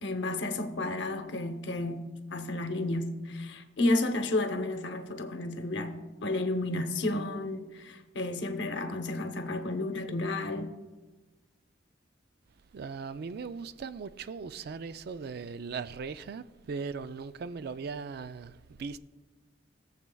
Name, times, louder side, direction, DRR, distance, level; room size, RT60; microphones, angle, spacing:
voice 1, 0.0-10.7, left 2 dB, 70° left, 0.8 m, -32 dB
voice 2, 12.7-19.0, right 5 dB, 60° right, 0.4 m, -39 dB
18.5 x 7.3 x 2.3 m
head